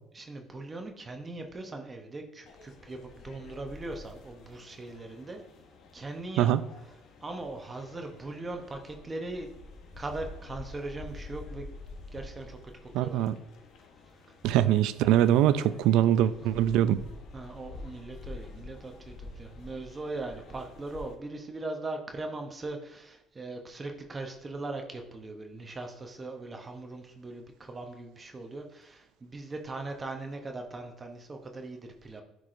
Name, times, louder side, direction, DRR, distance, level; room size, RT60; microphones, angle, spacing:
voice 1, 0.1-5.4 5.9-6.5 7.2-9.5 10.0-11.7 12.1-13.3 15.5-15.8 16.4-16.5 17.3-32.2, right 2 dB, 25° right, 3 dB, 0.9 m, -40 dB
sound 1, 2.5-21.1, left 3 dB, 60° left, 1.1 m, -48 dB
voice 2, 12.9-13.4 14.4-17.0, right 11 dB, 75° right, 14 dB, 0.4 m, -23 dB
9.6 x 4.7 x 2.6 m, 0.89 s
cardioid pair, 110°, 0 cm